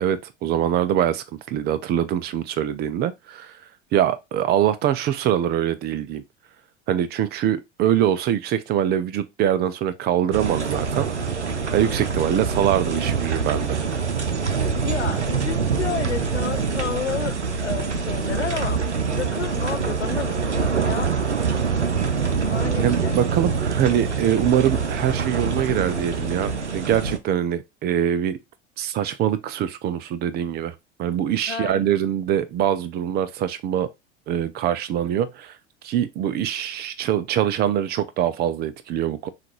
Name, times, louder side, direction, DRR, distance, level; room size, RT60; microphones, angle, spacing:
voice 1, 0.0-3.6 3.9-6.2 6.9-11.1 11.7-13.8 22.8-28.4 28.8-33.9 34.3-35.5 35.8-39.3, right 10 dB, 30° right, 0.5 m, -23 dB
sound 1, 10.3-27.2, right 5 dB, 90° right, 0.6 m, -25 dB
sound 2, 10.6-17.0, left 4 dB, 35° left, 0.8 m, -41 dB
voice 2, 14.8-18.8 19.1-21.1 22.5-23.2 31.5-32.0, left 7 dB, 90° left, 0.5 m, -31 dB
5.8 x 2.5 x 3.0 m
figure-of-eight pair, 75°, 34 cm